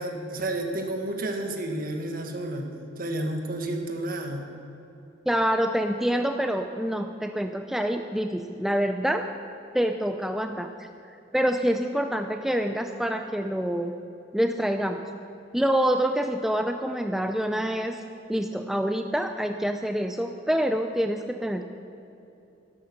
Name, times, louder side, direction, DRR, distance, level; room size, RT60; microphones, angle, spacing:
voice 1, 0.0-2.7 3.0-4.5, right 1 dB, 50° right, 4 dB, 1.6 m, -31 dB
voice 2, 5.3-9.2 9.7-10.9 11.3-13.9 14.3-15.0 15.5-18.0 18.3-21.6, equal, ahead, 5 dB, 0.4 m, -26 dB
13.0 x 11.5 x 6.9 m, 2.9 s
head